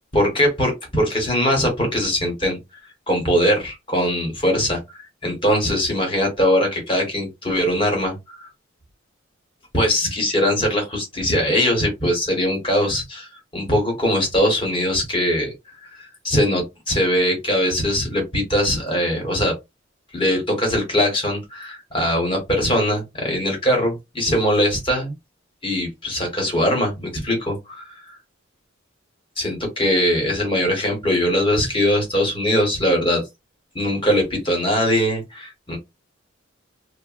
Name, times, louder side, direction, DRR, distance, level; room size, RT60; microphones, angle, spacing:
voice 1, 0.1-2.6 3.1-8.5 9.7-15.5 15.8-19.5 20.1-25.1 25.6-27.9 29.4-33.2 33.7-35.8, equal, 25° left, 1.3 m, -21 dB
2.7 x 2.4 x 2.5 m
head